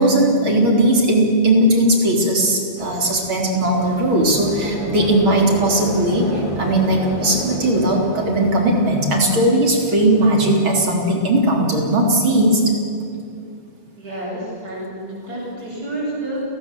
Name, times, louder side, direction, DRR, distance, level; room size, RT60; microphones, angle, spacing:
voice 1, 0.0-12.6, right 1 dB, 70° right, 0 dB, 4.3 m, -18 dB
sound 1, 2.8-10.6, equal, 20° left, 4.0 m, -31 dB
voice 2, 14.0-16.4, right 1 dB, 45° right, -5 dB, 8.7 m, -29 dB
30.0 x 18.5 x 7.6 m, 2.4 s
omnidirectional pair, 2.3 m